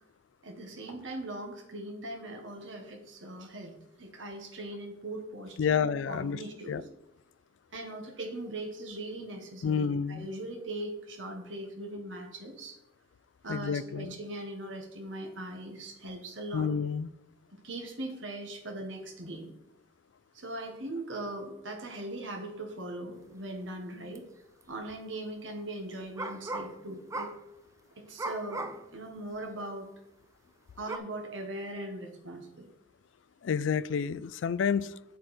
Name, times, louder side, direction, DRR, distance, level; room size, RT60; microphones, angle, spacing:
voice 1, 0.4-3.7 4.0-5.8 6.1-6.9 7.7-12.8 13.4-16.7 17.6-19.5 20.4-24.2 24.7-27.3 28.0-29.9 30.8-32.7, right 1 dB, 75° right, 3 dB, 1.7 m, -40 dB
voice 2, 5.6-6.4 6.7-6.8 9.6-10.3 13.5-14.2 16.5-17.1 33.4-35.0, left 6 dB, 70° left, 18 dB, 0.4 m, -29 dB
sound 1, 24.1-24.2 24.6-25.0 26.2-26.8 27.1-27.5 28.2-28.9 29.4-29.5 30.9-31.0, right 2 dB, 15° right, 0.4 m, -37 dB
8.0 x 7.4 x 4.3 m, 0.87 s
head